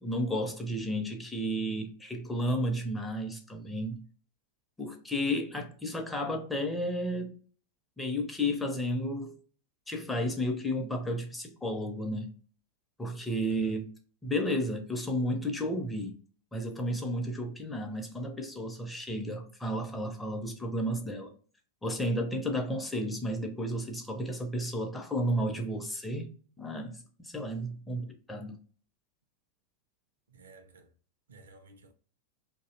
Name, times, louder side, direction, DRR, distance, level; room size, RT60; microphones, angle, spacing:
voice 1, 0.0-4.0 4.8-7.4 8.0-9.3 9.9-12.3 13.0-13.9 14.2-16.2 16.5-21.3 21.8-28.6, equal, 10° left, 0.5 m, -32 dB
voice 2, 30.3-30.9 31.3-31.9, right 3 dB, 65° right, 0.4 m, -54 dB
2.5 x 2.0 x 2.5 m
figure-of-eight pair, 90°, 0 cm